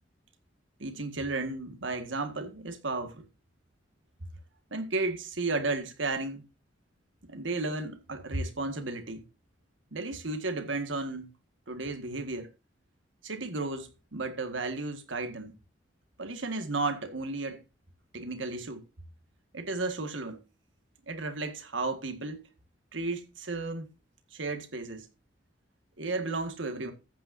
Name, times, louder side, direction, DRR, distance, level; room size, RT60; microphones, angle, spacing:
voice 1, 0.8-3.3 4.7-6.4 7.3-9.2 9.9-11.3 11.7-12.5 13.2-15.5 16.2-17.6 18.1-18.8 19.5-20.4 21.1-22.4 22.9-23.9 24.3-25.1 26.0-26.9, right 3 dB, 80° right, 1.8 m, -33 dB
14.0 x 9.0 x 2.7 m
head